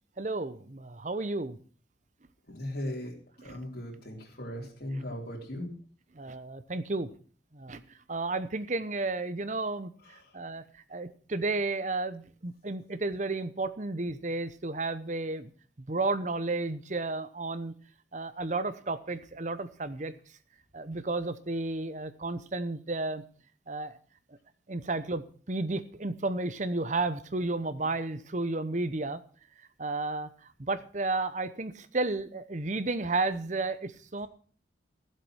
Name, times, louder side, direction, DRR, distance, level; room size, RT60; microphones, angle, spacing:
voice 1, 0.2-1.6 6.1-7.1 7.5-7.8 8.1-9.9 10.3-10.6 10.9-15.5 15.9-17.7 18.1-20.2 20.7-23.2 23.7-24.0 24.7-29.2 29.8-30.3 30.6-34.3, right 3 dB, 40° right, 13 dB, 0.9 m, -32 dB
voice 2, 2.5-5.8 10.0-10.4, left 1 dB, 55° left, -5 dB, 3.8 m, -38 dB
15.5 x 7.7 x 6.3 m, 0.43 s
head